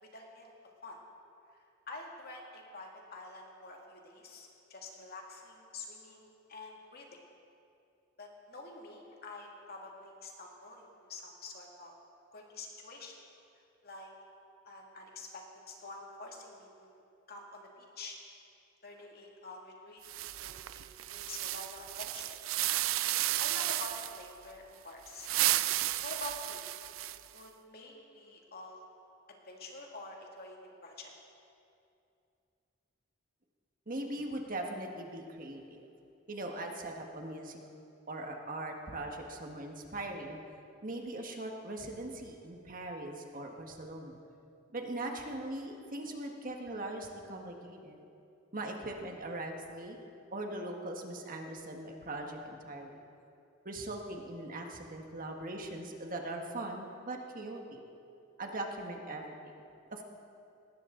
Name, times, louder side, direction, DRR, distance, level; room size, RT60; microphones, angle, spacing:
voice 1, 0.0-0.5 0.8-1.0 1.5-7.2 8.2-11.9 12.3-13.2 13.8-14.1 14.6-17.0 17.3-18.2 18.8-22.4 23.4-25.3 26.0-26.6 27.3-28.8 29.4-31.1, left 2 dB, 50° left, 0 dB, 2.4 m, -47 dB
sound 1, 20.0-24.2 25.1-27.4, right 15 dB, 90° right, 0.4 m, -33 dB
voice 2, 33.9-35.9 36.3-37.6 38.1-40.4 40.8-44.2 44.7-48.0 48.5-50.0 50.3-53.0 53.7-57.8 58.4-59.5 59.9-60.0, right 1 dB, 45° right, 2 dB, 1.6 m, -40 dB
19.0 x 17.5 x 3.9 m, 2.6 s
head